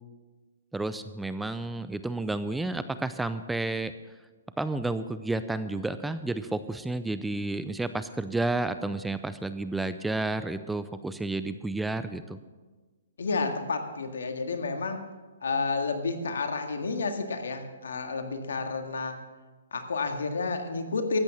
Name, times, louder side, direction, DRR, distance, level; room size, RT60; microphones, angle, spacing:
voice 1, 0.7-3.9 4.6-12.4, right 2 dB, 5° right, 12 dB, 0.5 m, -31 dB
voice 2, 13.2-15.0 15.4-19.2 19.7-21.2, left 4 dB, 75° left, 6 dB, 1.9 m, -30 dB
13.5 x 8.8 x 7.1 m, 1.3 s
hypercardioid pair, 140°, 0 cm